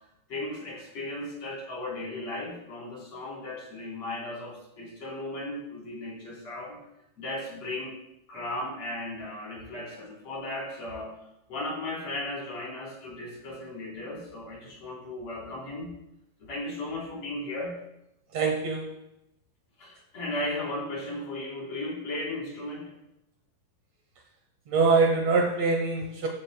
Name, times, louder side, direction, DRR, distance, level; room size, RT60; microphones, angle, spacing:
voice 1, 0.3-6.8 7.2-8.0 8.3-11.1 11.5-15.9 16.4-17.8 19.8-22.9, left 1 dB, 40° left, -4 dB, 4.5 m, -36 dB
voice 2, 18.3-19.0 24.7-26.3, right 4 dB, 85° right, 2 dB, 1.4 m, -24 dB
13.5 x 11.0 x 2.2 m, 0.85 s
omnidirectional pair, 4.5 m